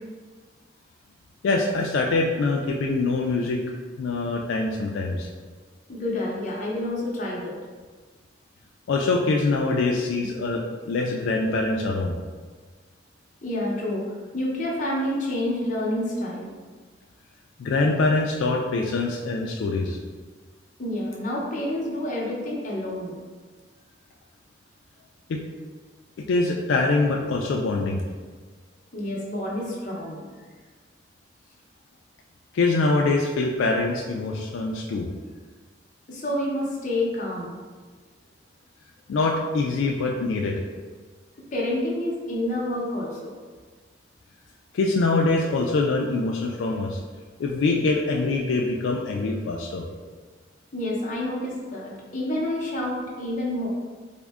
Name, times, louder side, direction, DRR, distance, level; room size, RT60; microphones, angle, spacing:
voice 1, 1.4-3.6 4.0-5.3 8.9-10.6 10.9-12.2 17.6-20.0 25.3-25.4 26.3-28.0 32.5-35.1 39.1-40.6 44.7-47.0 47.4-49.8, left 3 dB, 80° left, 0 dB, 0.3 m, -24 dB
voice 2, 5.9-7.5 10.2-10.3 13.4-14.0 14.3-16.5 20.8-23.2 28.9-30.3 36.1-37.6 41.5-43.3 50.7-53.7, left 1 dB, 40° left, -4 dB, 0.7 m, -28 dB
3.5 x 2.1 x 3.5 m, 1.5 s
head